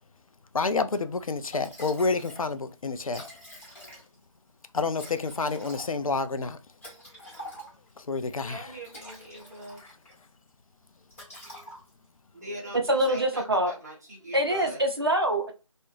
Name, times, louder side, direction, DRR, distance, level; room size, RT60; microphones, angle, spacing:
voice 1, 0.5-3.3 4.7-6.6 8.0-8.8 9.8-10.0, left 4 dB, 80° left, 0.4 m, -29 dB
Liquid, 1.5-2.4 2.7-2.8 3.0-4.3 4.9-8.0 8.6-10.2 10.5-10.7 11.1-12.1, equal, 25° left, 0.9 m, -46 dB
voice 2, 8.3-9.8 12.3-14.8, equal, 30° right, 0.9 m, -41 dB
voice 3, 12.9-13.7 14.3-15.5, right 1 dB, 45° right, 0.5 m, -24 dB
2.4 x 2.1 x 3.0 m
figure-of-eight pair, 170°, 18 cm